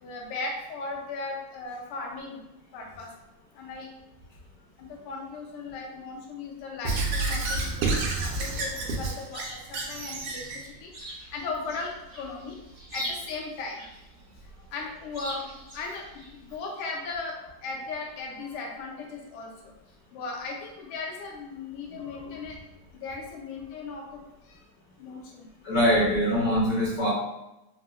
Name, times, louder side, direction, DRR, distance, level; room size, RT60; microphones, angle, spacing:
voice 1, 0.0-2.4 2.7-3.1 3.5-3.9 4.8-10.4 10.8-12.6 12.9-13.8 14.7-16.0 16.4-17.3 17.6-19.7 20.1-22.6 22.9-24.2 24.5-24.6 25.0-25.5, left 3 dB, 80° left, 0 dB, 1.6 m, -37 dB
Squeak / Writing, 6.8-10.6, right 3 dB, 90° right, 1.5 m, -29 dB
Chirp tweet, 9.0-16.6, equal, 60° right, 0.9 m, -43 dB
voice 2, 25.6-27.1, equal, 60° left, -6 dB, 1.0 m, -23 dB
4.1 x 2.1 x 2.3 m, 0.92 s
omnidirectional pair, 2.4 m